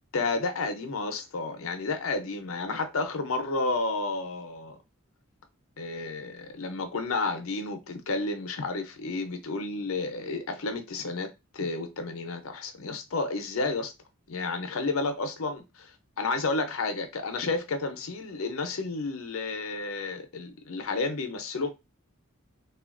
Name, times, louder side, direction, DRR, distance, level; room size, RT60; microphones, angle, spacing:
voice 1, 0.0-4.8 5.8-13.9 14.3-21.7, left 3 dB, 75° left, 0.6 m, -31 dB
3.0 x 2.4 x 2.4 m
head